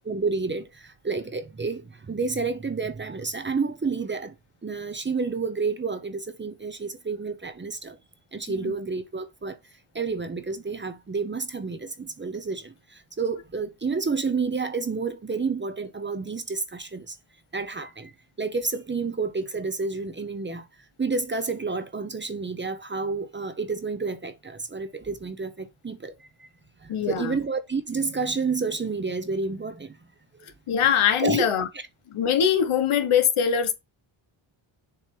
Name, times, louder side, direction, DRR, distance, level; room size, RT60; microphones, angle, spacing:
voice 1, 0.0-4.3 4.6-8.0 8.3-9.6 9.9-17.2 17.5-18.1 18.4-20.6 21.0-26.1 26.4-26.5 26.8-29.9 31.2-31.5, right 4 dB, 20° right, 0.7 m, -30 dB
voice 2, 26.9-27.4 30.7-31.7 32.1-33.7, left 8 dB, 75° left, 1.3 m, -22 dB
7.0 x 3.2 x 4.5 m
wide cardioid pair, 120°, 50 cm